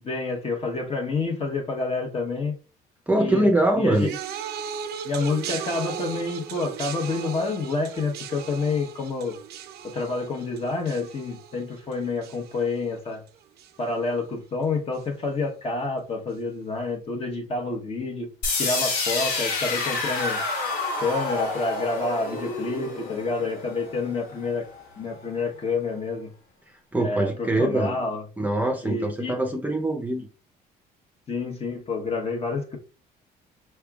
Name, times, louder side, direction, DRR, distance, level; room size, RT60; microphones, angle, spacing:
voice 1, 0.0-2.6 3.2-3.5 3.8-4.1 5.0-9.4 9.8-13.2 13.8-18.3 18.6-20.4 21.0-24.6 25.0-26.3 27.0-28.2 28.8-29.4 31.3-32.8, left 3 dB, 35° left, 2 dB, 1.1 m, -28 dB
voice 2, 3.1-4.1 26.9-28.0 28.4-30.3, right 1 dB, 10° right, 1 dB, 0.7 m, -23 dB
sound 1, 3.9-13.3 13.6-14.1 15.0-15.1, right 8 dB, 75° right, 0.7 m, -37 dB
sound 2, 18.4-24.4, left 3 dB, 80° left, 1.6 m, -28 dB
5.8 x 3.4 x 2.4 m, 0.36 s
cardioid pair, 110°, 17 cm